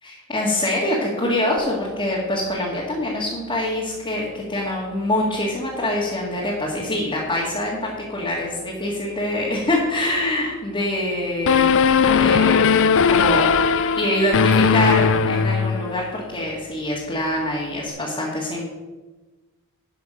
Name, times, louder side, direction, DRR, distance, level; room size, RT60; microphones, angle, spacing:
voice 1, 0.0-11.7 12.0-13.4 14.0-18.7, left 1 dB, 25° left, -5 dB, 1.8 m, -25 dB
sound 1, 11.5-16.1, left 5 dB, 60° left, 0.4 m, -18 dB
11.0 x 5.9 x 6.2 m, 1.2 s
head